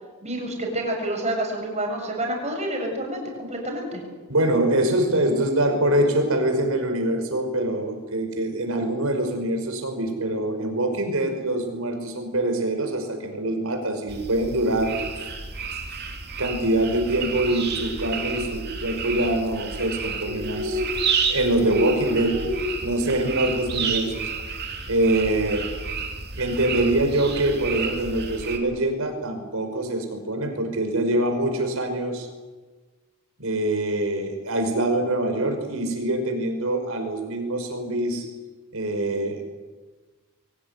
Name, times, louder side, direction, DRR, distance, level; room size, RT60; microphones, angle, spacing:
voice 1, 0.2-4.0, right 1 dB, 30° right, 1 dB, 7.0 m, -28 dB
voice 2, 4.3-15.3 16.4-20.8 21.3-22.4 22.8-24.2 24.9-25.6 26.4-32.3 33.4-38.2 38.7-39.4, right 1 dB, 70° right, 5 dB, 5.5 m, -24 dB
sound 1, 14.1-28.6, right 3 dB, 50° right, 3.4 m, -30 dB
23.0 x 18.0 x 9.8 m, 1.3 s
head